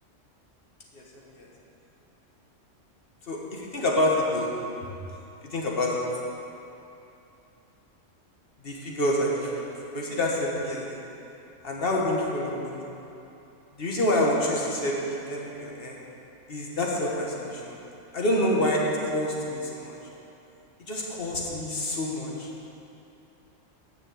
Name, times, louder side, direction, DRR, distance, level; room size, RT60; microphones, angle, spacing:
voice 1, 0.9-1.5 3.2-4.5 5.4-6.0 8.6-9.6 9.9-10.9 11.6-12.8 13.8-16.0 16.5-17.8 18.1-20.0 20.8-22.5, left 1 dB, 50° left, -2 dB, 1.6 m, -27 dB
9.5 x 6.2 x 7.7 m, 2.8 s
omnidirectional pair, 1.3 m